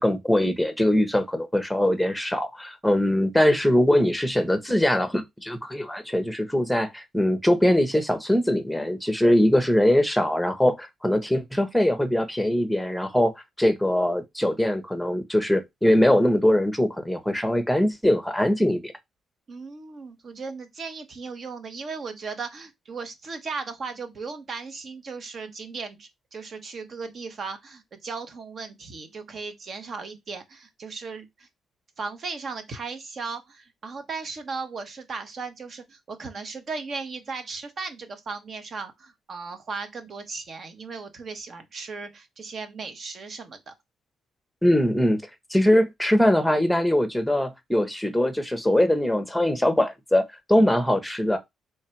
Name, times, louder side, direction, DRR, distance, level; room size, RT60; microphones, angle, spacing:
voice 1, 0.0-13.3 13.6-18.9 44.6-45.2 45.5-51.4, left 1 dB, ahead, 0.8 m, -22 dB
voice 2, 19.5-31.5 32.0-43.7, right 4 dB, 50° right, 0.9 m, -36 dB
3.3 x 2.4 x 4.4 m
cardioid pair, 90°, 0 cm